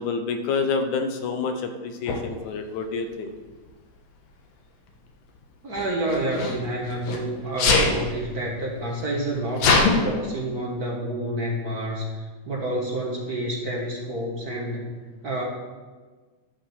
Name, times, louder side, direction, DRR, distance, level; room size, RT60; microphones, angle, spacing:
voice 1, 0.0-3.3, left 4 dB, 80° left, 7 dB, 2.4 m, -28 dB
Sneeze, 2.1-2.2 3.3-3.7 5.7-7.2 7.6-7.9 8.7-8.8 9.0-9.9, left 4 dB, 65° left, 2.2 m, -22 dB
voice 2, 5.6-12.1 12.4-14.9 15.2-15.4, right 1 dB, 45° right, -1 dB, 1.3 m, -28 dB
11.5 x 5.8 x 7.1 m, 1.4 s
omnidirectional pair, 3.5 m